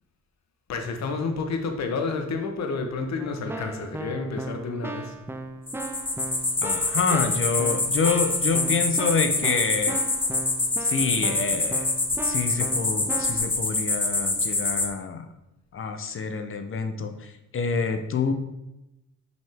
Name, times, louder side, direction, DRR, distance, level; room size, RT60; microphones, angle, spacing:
voice 1, 0.7-5.1, left 4 dB, 60° left, 5 dB, 1.1 m, -30 dB
Keyboard (musical), 3.2-13.5, right 2 dB, 10° right, 0.5 m, -37 dB
sound 1, 5.7-14.9, left 2 dB, 15° left, 0.9 m, -26 dB
voice 2, 6.6-10.0 10.8-11.9 12.2-15.3 15.7-18.3, left 5 dB, 45° left, 8 dB, 0.8 m, -27 dB
6.1 x 5.3 x 3.5 m, 0.93 s
cardioid pair, 90°, 30 cm